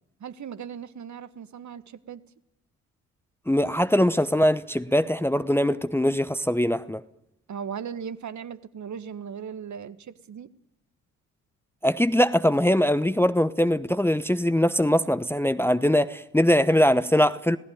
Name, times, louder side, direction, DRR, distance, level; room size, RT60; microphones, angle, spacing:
voice 1, 0.2-2.2 7.5-10.5, right 7 dB, 40° right, 1.6 m, -37 dB
voice 2, 3.5-7.0 11.8-17.6, equal, 5° left, 1.0 m, -22 dB
27.5 x 18.0 x 9.3 m
figure-of-eight pair, 45°, 43 cm